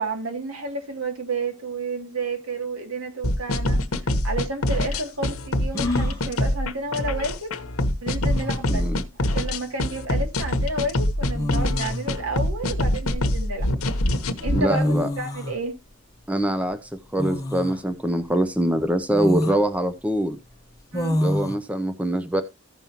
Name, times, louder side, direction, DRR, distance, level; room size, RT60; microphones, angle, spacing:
voice 1, 0.0-3.8 4.2-7.5 8.0-8.9 9.2-13.7 14.4-15.8 20.9-21.2, right 2 dB, 80° right, 2.4 m, -31 dB
sound 1, 3.2-14.6, left 1 dB, 85° left, 1.0 m, -24 dB
sound 2, 5.7-6.2 7.7-7.8 8.2-8.7 10.0-10.2 11.3-12.1 12.7-13.8 14.4-14.5 14.7-15.6 17.2-17.8 18.3-18.4 19.1-19.6 20.9-21.6, left 1 dB, 15° left, 1.0 m, -27 dB
voice 2, 8.7-9.0 14.5-15.1 16.3-20.4 21.2-22.4, right 1 dB, 5° right, 0.6 m, -24 dB
15.0 x 5.4 x 2.9 m
head